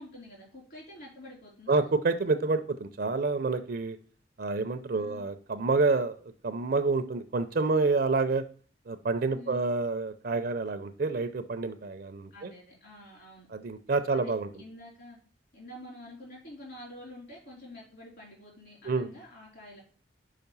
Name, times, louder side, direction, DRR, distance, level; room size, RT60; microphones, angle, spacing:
voice 1, 0.0-1.8 4.9-5.3 9.3-9.7 12.3-13.5 14.1-14.3 14.6-15.2 15.5-19.8, left 1 dB, 60° left, -4 dB, 4.0 m, -48 dB
voice 2, 1.7-4.0 4.4-8.4 8.9-12.5 13.5-14.5 18.8-19.1, right 3 dB, 55° right, 9 dB, 0.5 m, -28 dB
5.8 x 5.1 x 5.4 m, 0.44 s
head